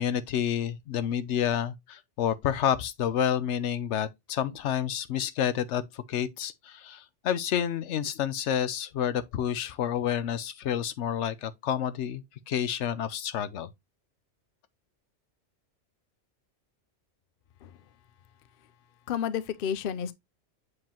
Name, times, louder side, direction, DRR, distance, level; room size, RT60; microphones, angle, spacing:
voice 1, 0.0-13.7, left 9 dB, 80° left, 1.0 m, -29 dB
voice 2, 19.1-20.1, left 8 dB, 60° left, 0.8 m, -31 dB
7.4 x 4.7 x 2.9 m
omnidirectional pair, 1.2 m